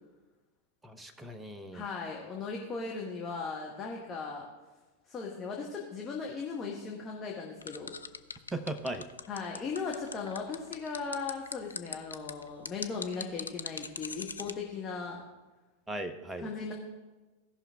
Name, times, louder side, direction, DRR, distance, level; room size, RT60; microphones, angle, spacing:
voice 1, 0.8-1.8 8.5-9.1 15.9-16.5, right 1 dB, 10° right, 9 dB, 0.8 m, -38 dB
voice 2, 1.7-4.5 5.1-7.9 9.3-15.2 16.4-16.7, left 4 dB, 25° left, -1 dB, 1.2 m, -37 dB
sound 1, 7.6-14.5, left 5 dB, 75° left, 0.4 m, -40 dB
16.5 x 5.7 x 3.5 m, 1.2 s
figure-of-eight pair, 90°, 0 cm